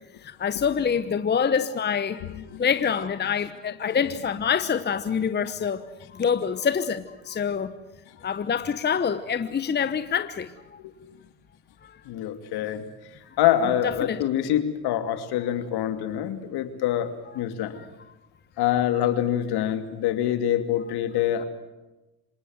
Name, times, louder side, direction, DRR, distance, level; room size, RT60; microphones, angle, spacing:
voice 1, 0.2-2.3 2.6-5.8 6.1-7.7 8.2-10.8 11.8-11.9 13.8-14.2 17.3-17.4 17.7-18.1, left 7 dB, 25° left, 1.1 m, -26 dB
voice 2, 12.1-12.8 13.4-17.8 18.6-21.4, left 11 dB, 60° left, 2.7 m, -25 dB
26.0 x 19.0 x 8.1 m
supercardioid pair, 95°, 44 cm